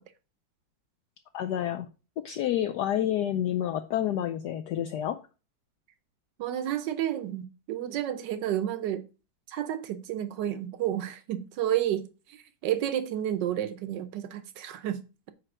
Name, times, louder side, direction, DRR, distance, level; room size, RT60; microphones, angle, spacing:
voice 1, 1.3-1.9 2.2-5.2, left 11 dB, 70° left, 1.1 m, -29 dB
voice 2, 6.4-9.1 9.5-12.1 12.6-15.0, right 11 dB, 70° right, 1.4 m, -30 dB
8.8 x 3.3 x 6.0 m
omnidirectional pair, 2.1 m